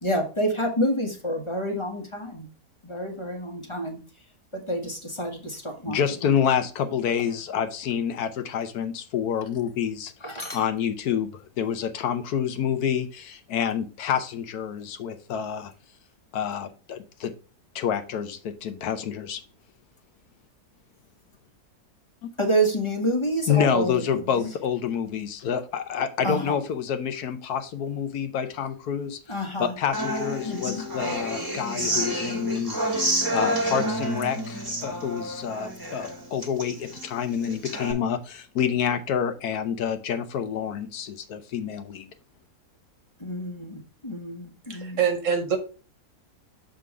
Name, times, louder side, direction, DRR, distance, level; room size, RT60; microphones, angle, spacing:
voice 1, 0.0-2.5 2.8-4.0 4.5-6.0 10.2-10.6 22.4-24.5 26.2-26.6 29.3-29.7 30.5-30.8 43.2-45.0, right 1 dB, 20° left, 3 dB, 1.1 m, -28 dB
voice 2, 5.9-15.7 16.3-17.3 17.7-19.4 23.5-29.2 29.6-32.7 33.3-42.1, left 8 dB, 75° left, 9 dB, 1.2 m, -28 dB
Human voice / Acoustic guitar, 29.9-37.9, right 1 dB, 15° right, 1.5 m, -29 dB
voice 3, 44.7-45.6, right 7 dB, 55° right, 6 dB, 1.4 m, -25 dB
6.8 x 3.8 x 4.7 m, 0.36 s
omnidirectional pair, 1.7 m